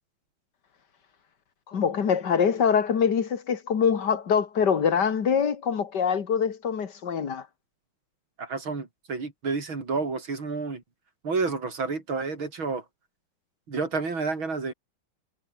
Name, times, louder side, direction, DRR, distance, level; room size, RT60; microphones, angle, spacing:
voice 1, 1.7-7.5, left 7 dB, 60° left, 2.4 m, -24 dB
voice 2, 8.4-10.8 11.2-12.8 13.7-14.7, right 4 dB, 85° right, 5.0 m, -30 dB
omnidirectional pair, 2.1 m